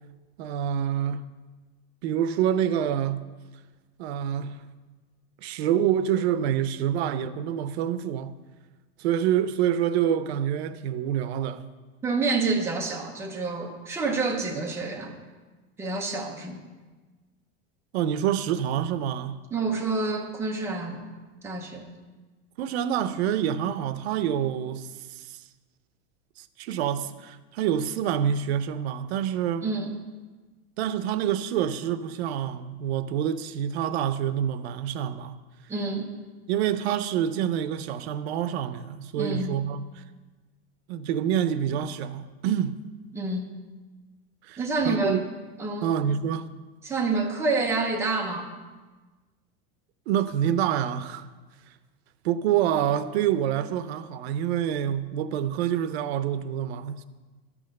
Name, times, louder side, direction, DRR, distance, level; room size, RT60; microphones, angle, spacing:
voice 1, 0.4-1.2 2.0-3.3 4.0-4.6 5.4-8.3 9.0-11.7 17.9-19.4 22.6-25.4 26.4-29.7 30.8-35.4 36.5-40.0 40.9-42.7 44.4-45.2 45.8-46.5 50.1-51.2 52.2-57.0, right 9 dB, 90° right, 0.7 m, -27 dB
voice 2, 12.0-15.1 15.8-16.6 19.5-21.0 21.4-21.9 29.6-30.0 35.7-36.1 39.1-39.5 43.1-43.5 44.6-45.2 45.6-46.0 46.8-48.5, right 3 dB, 10° right, 0.8 m, -28 dB
12.0 x 6.2 x 6.5 m
supercardioid pair, 175°, 31 cm